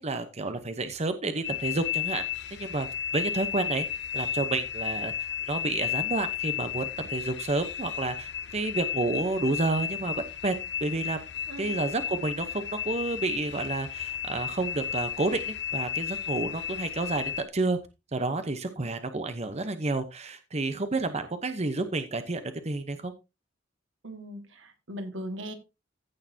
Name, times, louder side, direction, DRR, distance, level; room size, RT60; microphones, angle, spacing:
voice 1, 0.0-2.2 2.5-2.9 3.1-10.1 10.4-10.5 10.8-11.2 11.6-17.8 18.1-23.1, right 2 dB, 35° right, 9 dB, 0.9 m, -30 dB
sound 1, 1.4-17.4, left 10 dB, 65° left, 0.8 m, -33 dB
voice 2, 11.5-11.8 24.0-25.5, equal, 85° right, 7 dB, 1.8 m, -39 dB
15.5 x 6.6 x 2.8 m, 0.26 s
head